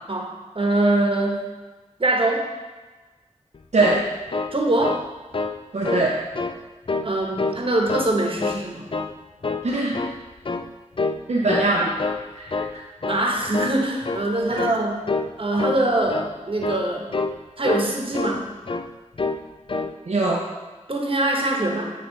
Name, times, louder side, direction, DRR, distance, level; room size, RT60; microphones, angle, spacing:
voice 1, 0.1-1.4 2.0-2.4 4.5-5.0 7.0-8.9 13.1-15.0 15.4-17.1 17.6-18.4 20.9-21.9, right 2 dB, 45° right, 0 dB, 1.3 m, -23 dB
sound 1, 3.5-5.1 5.3-5.6 5.8-6.5 6.9-7.6 7.9-8.6 8.9-9.1 9.4-10.2 10.4-10.7 11.0-11.2 11.5-12.2 12.5-12.7 13.0-13.3 13.5-13.8 14.0-14.3 14.6-14.8 15.1-15.3 15.6-15.8 16.1-16.3 16.6-16.8 17.1-17.4 17.6-18.4 18.7-18.9 19.2-19.4 19.7-19.9, left 3 dB, 40° left, 0.4 m, -27 dB
voice 2, 3.7-4.0 5.7-6.2 9.6-10.0 11.3-12.0 12.3-12.8 14.5-14.6 20.1-20.5, right 2 dB, 65° right, -4 dB, 0.8 m, -22 dB
9.5 x 3.3 x 4.1 m, 1.2 s
cardioid pair, 40°, 13 cm